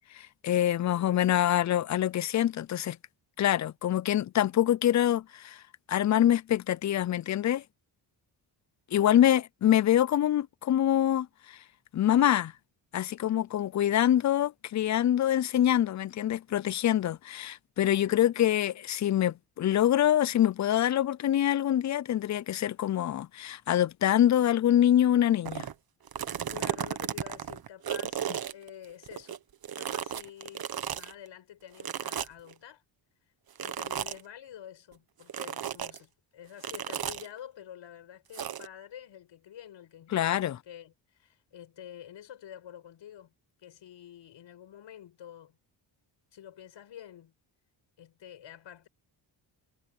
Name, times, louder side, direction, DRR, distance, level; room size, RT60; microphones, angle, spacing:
voice 1, 0.1-3.0 3.4-5.6 5.9-7.6 8.9-11.6 11.9-12.5 12.9-25.6 40.1-40.6, left 11 dB, 40° left, 0.4 m, -25 dB
voice 2, 0.8-1.3 9.0-9.2 18.0-18.3 26.5-29.4 29.7-32.8 33.6-43.3 43.6-45.6 46.3-47.3 48.0-48.9, left 10 dB, 85° left, 6.6 m, -48 dB
sound 1, 25.4-25.7 26.1-29.4 29.6-31.1 31.8-32.5 33.6-34.2 35.3-36.0 36.6-37.3 38.3-38.7, right 9 dB, 55° right, 1.3 m, -34 dB
cardioid pair, 110°, 43 cm